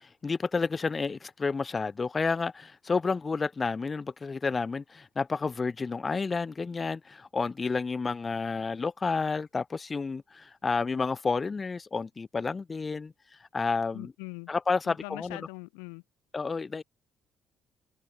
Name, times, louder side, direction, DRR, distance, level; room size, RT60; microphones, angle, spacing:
voice 1, 0.0-13.1 13.5-14.1 14.5-15.4 16.3-16.8, left 4 dB, 35° left, 3.9 m, -30 dB
voice 2, 13.9-14.5 14.9-16.0, left 40 dB or more, 85° left, 3.2 m, -42 dB
open air
hypercardioid pair, 55°, 0 cm